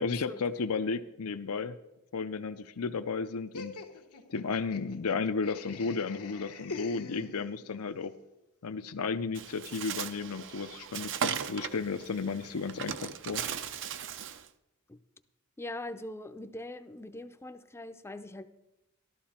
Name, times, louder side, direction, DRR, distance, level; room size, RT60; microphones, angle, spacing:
voice 1, 0.0-1.8 2.1-3.8 4.3-8.2 8.6-13.4, left 4 dB, 70° left, 9 dB, 0.6 m, -33 dB
Laughter, 3.5-7.8, left 4 dB, 90° left, 1.3 m, -44 dB
Bird, 9.3-14.5, right 8 dB, 55° right, 0.6 m, -37 dB
voice 2, 15.6-18.5, left 1 dB, 10° left, 10 dB, 0.5 m, -42 dB
13.5 x 12.5 x 4.3 m, 0.93 s
head